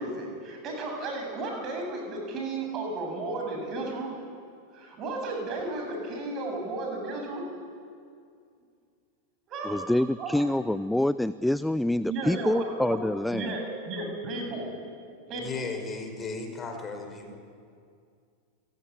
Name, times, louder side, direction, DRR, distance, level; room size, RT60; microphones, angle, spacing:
voice 1, 0.0-4.1 4.7-7.5 9.5-9.8 10.2-10.3 12.1-13.0 13.3-14.9 15.3-15.7, right 2 dB, 35° right, 2 dB, 7.9 m, -34 dB
voice 2, 9.6-13.6, left 1 dB, 5° left, 16 dB, 0.5 m, -26 dB
voice 3, 15.3-17.4, left 4 dB, 20° left, 5 dB, 5.0 m, -36 dB
29.0 x 17.0 x 9.9 m, 2.3 s
figure-of-eight pair, 90°, 0 cm